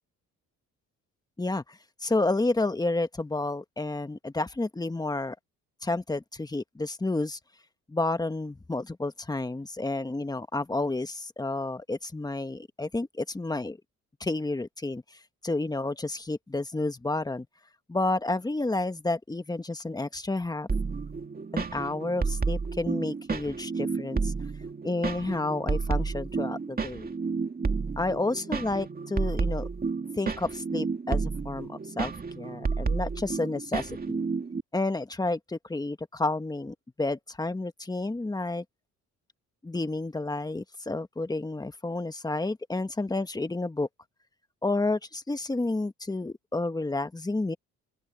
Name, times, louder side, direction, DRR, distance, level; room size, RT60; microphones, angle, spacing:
voice 1, 1.4-5.4 5.8-7.4 7.9-13.8 14.2-15.0 15.4-17.5 17.9-20.7 21.5-24.3 24.8-27.1 28.0-29.7 30.2-34.2 34.7-38.6 39.6-43.9 44.6-47.6, left 2 dB, 15° left, 1.4 m, -30 dB
sound 1, 20.7-34.6, right 4 dB, 30° right, 2.5 m, -31 dB
open air
cardioid pair, 90°, 30 cm